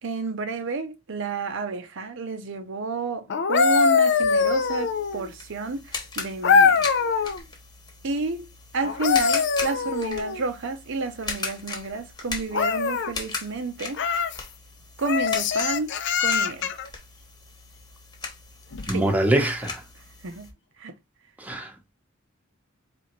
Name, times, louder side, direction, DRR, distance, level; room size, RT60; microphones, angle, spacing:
voice 1, 0.0-6.9 8.0-8.5 8.7-14.0 15.0-15.9 16.2-16.7 18.9-19.2 20.2-20.5 20.8-21.0, right 3 dB, 65° right, 0.7 m, -30 dB
sound 1, 3.3-5.3 6.4-7.4 8.8-10.4 12.5-13.1 13.9-14.4 15.0-16.9 18.7-18.9, left 5 dB, 60° left, 0.5 m, -22 dB
sound 2, 4.2-20.5, left 3 dB, 20° left, 1.2 m, -38 dB
voice 2, 18.9-19.8 21.4-21.7, right 1 dB, 10° right, 0.9 m, -23 dB
4.2 x 3.4 x 3.0 m
head